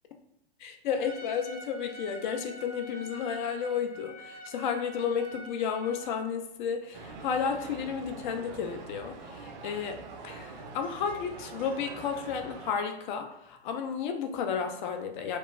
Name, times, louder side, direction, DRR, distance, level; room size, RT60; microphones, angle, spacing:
voice 1, 0.6-15.4, left 7 dB, 55° left, 5 dB, 0.5 m, -32 dB
Trumpet, 1.0-6.2, right 1 dB, 35° left, 0.9 m, -46 dB
sound 1, 6.9-12.7, right 4 dB, 55° right, 0.5 m, -44 dB
2.2 x 2.2 x 3.0 m, 0.85 s
hypercardioid pair, 100°, 29 cm